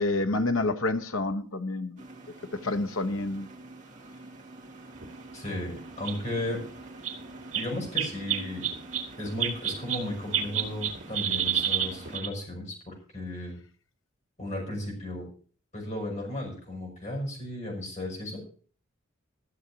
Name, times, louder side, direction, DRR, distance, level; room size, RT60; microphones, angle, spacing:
voice 1, 0.0-2.0 2.6-3.5, left 2 dB, 85° left, 1.0 m, -28 dB
sound 1, 2.0-12.2, right 2 dB, 35° right, 2.2 m, -47 dB
sound 2, 5.0-5.1 5.8-5.9 6.0-6.2 6.5-6.6 7.0-7.2 7.5-10.0 10.3-12.3, right 9 dB, 85° right, 2.1 m, -29 dB
voice 2, 5.3-6.6 7.5-8.7 9.2-13.6 14.4-15.2 15.7-18.4, left 1 dB, 35° left, 6.4 m, -35 dB
14.5 x 6.9 x 6.2 m
head